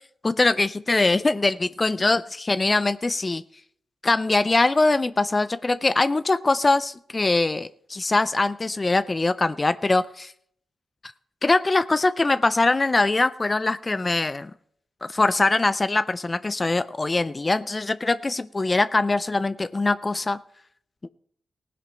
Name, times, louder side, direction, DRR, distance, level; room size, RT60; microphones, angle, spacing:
voice 1, 0.2-3.4 4.0-10.3 11.4-14.5 15.0-20.4 21.0-21.1, left 2 dB, 30° left, 14 dB, 0.4 m, -22 dB
15.5 x 10.0 x 4.4 m, 0.68 s
cardioid pair, 55°, 0 cm